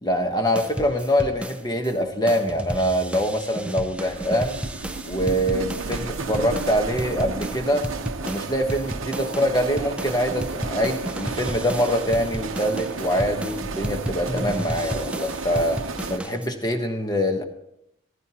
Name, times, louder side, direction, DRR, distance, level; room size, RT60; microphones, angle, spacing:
voice 1, 0.0-4.6 5.0-7.9 8.2-15.8 16.1-17.4, equal, 20° left, 5 dB, 1.1 m, -24 dB
sound 1, 0.5-1.9 2.3-16.5, right 1 dB, 5° right, 0.5 m, -33 dB
sound 2, 4.0-16.2, right 3 dB, 70° right, 0.8 m, -33 dB
15.0 x 15.0 x 2.9 m, 0.77 s
head